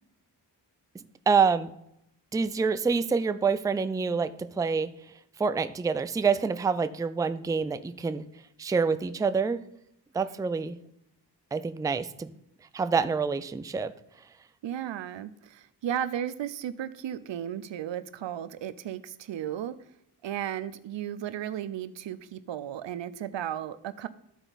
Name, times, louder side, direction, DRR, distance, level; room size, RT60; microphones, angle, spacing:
voice 1, 1.3-1.7 2.3-4.9 5.4-8.2 8.6-9.6 10.1-10.8 11.5-12.3 12.7-13.9, right 5 dB, 10° right, 12 dB, 0.3 m, -26 dB
voice 2, 14.6-19.7 20.2-24.1, right 10 dB, 85° right, 14 dB, 0.6 m, -34 dB
13.0 x 4.4 x 4.0 m, 0.78 s
cardioid pair, 75°, 43 cm